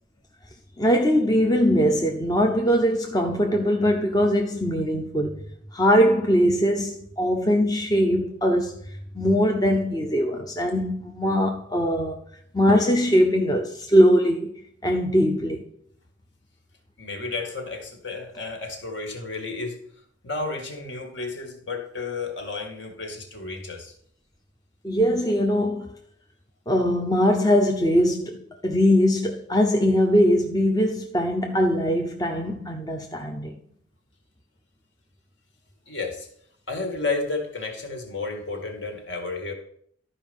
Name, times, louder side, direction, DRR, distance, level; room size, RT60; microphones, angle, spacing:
voice 1, 0.8-5.4 5.7-8.8 9.1-12.2 12.5-14.5 14.8-15.6 24.8-25.9 26.7-33.5, equal, 20° left, 0.6 m, -21 dB
voice 2, 17.0-19.8 20.2-23.9 35.9-36.3 36.7-39.5, left 3 dB, 65° left, 2.0 m, -32 dB
12.0 x 5.0 x 5.3 m
head